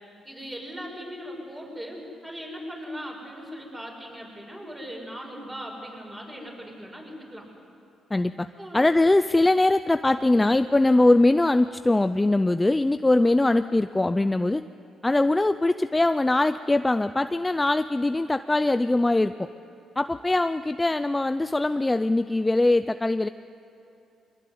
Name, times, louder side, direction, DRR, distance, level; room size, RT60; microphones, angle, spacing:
voice 1, 0.2-7.5 8.6-8.8, equal, 15° right, -1 dB, 7.3 m, -39 dB
voice 2, 8.1-14.6 15.0-19.5 20.0-23.3, left 2 dB, 15° left, 11 dB, 0.5 m, -22 dB
23.0 x 21.5 x 9.6 m, 2.8 s
cardioid pair, 90°, 0 cm